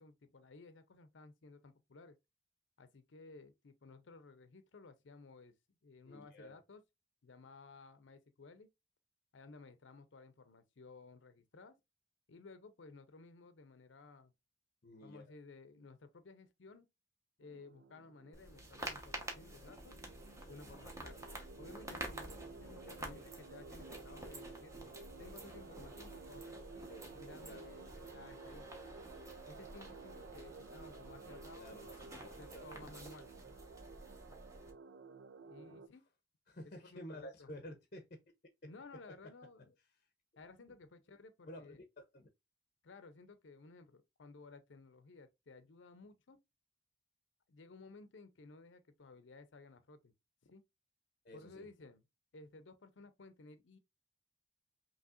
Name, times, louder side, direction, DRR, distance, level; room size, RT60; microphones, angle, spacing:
voice 1, 0.0-2.2 2.8-5.6 5.8-6.8 7.2-8.7 9.3-11.8 12.3-14.3 15.0-16.9 17.4-20.0 20.5-24.7 25.2-27.8 28.1-29.0 29.5-33.3 35.4-36.0 36.6-37.5 38.6-39.7 40.4-41.8 42.8-46.4 47.5-50.1 50.4-50.6 51.3-52.0 52.3-53.8, left 3 dB, 80° left, 0.6 m, -56 dB
voice 2, 6.1-6.6 14.8-15.3 23.1-23.3 27.4-27.6 31.6-32.0 32.2-32.9 35.6-35.8 36.5-38.2 38.6-38.7 41.5-42.3 51.2-51.7, left 1 dB, 45° left, 0.7 m, -52 dB
sound 1, 17.4-35.9, right 4 dB, 65° right, 0.4 m, -54 dB
sound 2, 18.3-34.7, right 1 dB, 15° right, 1.0 m, -50 dB
5.5 x 3.0 x 2.4 m
head